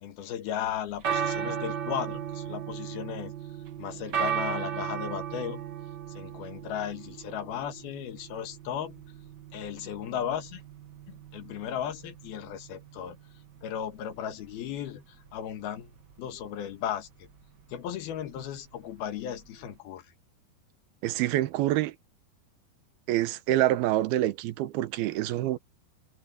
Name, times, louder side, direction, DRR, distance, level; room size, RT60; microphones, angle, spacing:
voice 1, 0.0-3.3 3.8-5.6 6.2-9.0 9.5-10.6 11.1-13.2 13.6-15.0 15.3-15.9 16.2-17.3 17.7-20.1, left 9 dB, 80° left, 3.4 m, -35 dB
sound 1, 0.7-19.7, right 8 dB, 40° right, 1.6 m, -37 dB
voice 2, 21.0-22.0 23.1-25.6, right 14 dB, 90° right, 2.8 m, -26 dB
omnidirectional pair, 4.4 m